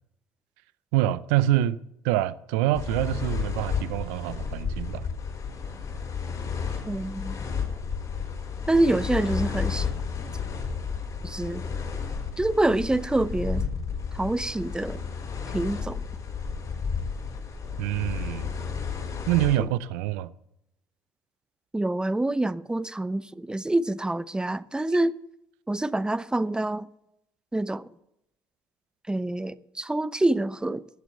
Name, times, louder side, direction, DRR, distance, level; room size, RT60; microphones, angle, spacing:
voice 1, 0.9-1.8 2.0-5.1 17.8-18.6 19.3-20.3, right 14 dB, 80° right, 0.6 m, -26 dB
sound 1, 2.7-19.6, left 6 dB, 45° left, 5.3 m, -32 dB
voice 2, 6.9-7.4 8.7-9.9 11.2-11.7 12.4-13.6 14.1-15.0 15.5-16.0 19.6-19.7 21.7-25.1 25.7-26.9 27.5-27.9 29.1-30.8, right 2 dB, 10° right, 0.7 m, -26 dB
17.5 x 7.6 x 6.7 m
hypercardioid pair, 65°, 8 cm